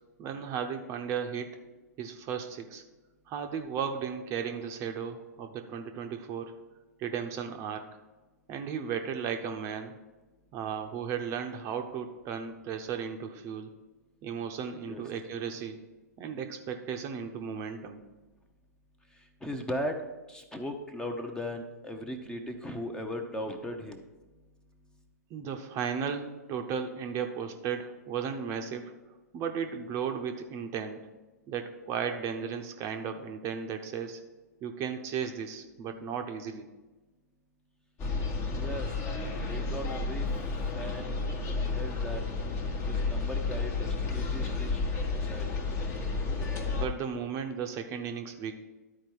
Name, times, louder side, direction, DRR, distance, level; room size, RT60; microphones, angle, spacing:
voice 1, 0.2-1.5 2.0-2.8 3.3-6.5 7.0-7.9 8.5-9.9 10.5-13.7 14.2-15.8 16.2-18.0 25.3-28.9 29.3-31.1 31.5-34.2 34.6-36.7 46.7-48.5, right 7 dB, 30° right, 5 dB, 0.8 m, -35 dB
voice 2, 19.4-20.0 20.3-24.0 38.5-40.3 40.7-41.2 41.7-42.2 42.9-44.8 45.1-45.4, equal, 10° left, 5 dB, 0.9 m, -38 dB
sound 1, 38.0-46.9, left 3 dB, 30° left, 1.2 m, -31 dB
12.0 x 4.5 x 4.6 m, 1.2 s
figure-of-eight pair, 110°, 9 cm